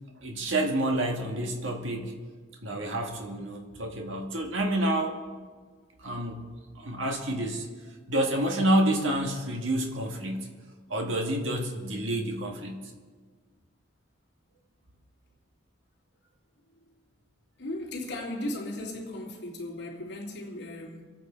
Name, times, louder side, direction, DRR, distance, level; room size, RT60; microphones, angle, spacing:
voice 1, 0.2-2.1 2.6-5.2 6.0-6.5 6.8-7.7 8.1-10.5 10.9-12.8, right 1 dB, 80° right, 1.7 m, -28 dB
voice 2, 17.6-21.1, left 1 dB, 60° left, 2.9 m, -36 dB
25.5 x 9.2 x 4.5 m
head